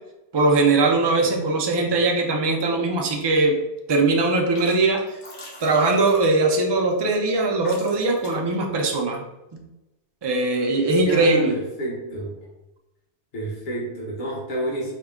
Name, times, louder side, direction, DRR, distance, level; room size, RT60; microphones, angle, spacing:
voice 1, 0.3-3.5 3.9-5.2 5.6-9.2 9.5-9.6 10.2-11.6, right 3 dB, 30° right, 0 dB, 0.5 m, -20 dB
sound 1, 3.1-3.6 3.9-4.7 5.0-6.6 7.3-7.4 7.6-8.5, left 1 dB, 85° left, 1.3 m, -43 dB
voice 2, 10.9-12.3 13.3-14.9, right 1 dB, 45° left, -4 dB, 1.1 m, -30 dB
4.5 x 2.2 x 3.6 m, 0.96 s
omnidirectional pair, 1.2 m